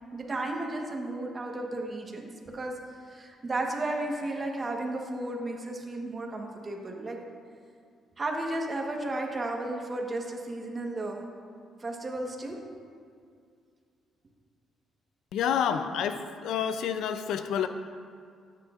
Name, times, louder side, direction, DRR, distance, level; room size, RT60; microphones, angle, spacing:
voice 1, 0.1-2.7 3.1-7.2 8.2-11.3 11.8-12.6, right 2 dB, 30° right, 1 dB, 1.2 m, -33 dB
voice 2, 15.3-17.7, left 8 dB, 80° left, 10 dB, 0.4 m, -29 dB
12.5 x 8.3 x 2.5 m, 2.2 s
cardioid pair, 90°, 0 cm